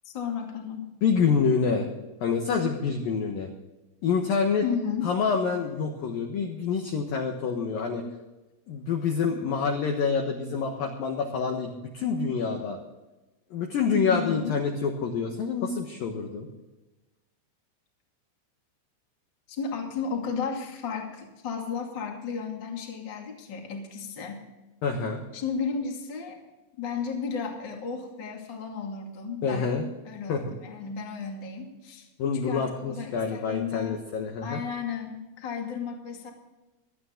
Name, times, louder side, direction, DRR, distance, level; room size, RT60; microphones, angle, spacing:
voice 1, 0.0-0.9 4.6-5.1 14.1-14.6 19.5-24.4 25.3-26.4 26.8-29.7 30.0-32.1 32.3-34.0 34.4-36.3, left 6 dB, 35° left, 1 dB, 1.9 m, -33 dB
voice 2, 1.0-1.9 2.2-3.5 4.0-4.6 5.0-8.0 8.7-12.8 13.5-16.5 24.8-25.2 29.4-29.9 30.3-30.4 32.2-34.6, left 5 dB, 70° left, 2 dB, 2.3 m, -27 dB
25.5 x 9.1 x 3.8 m, 1.1 s
omnidirectional pair, 5.8 m